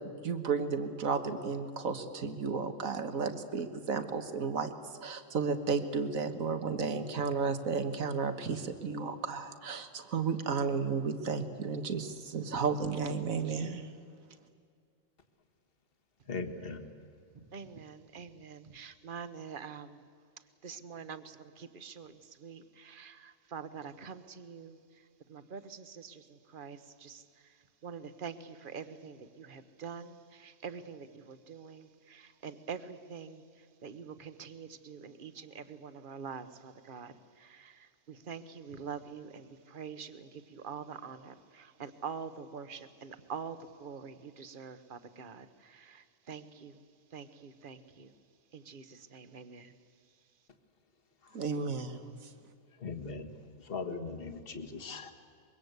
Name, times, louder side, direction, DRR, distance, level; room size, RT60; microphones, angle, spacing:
voice 1, 0.2-4.7 5.0-13.9 51.3-52.3, right 5 dB, 80° right, 9 dB, 1.9 m, -33 dB
voice 2, 16.3-16.9 52.8-53.3 53.6-55.1, left 4 dB, 45° left, 6 dB, 1.8 m, -39 dB
voice 3, 17.5-20.0 20.6-46.8 47.1-48.1 48.5-49.7, right 6 dB, 40° right, 11 dB, 1.2 m, -45 dB
24.5 x 22.5 x 8.1 m, 2.2 s
omnidirectional pair, 1.4 m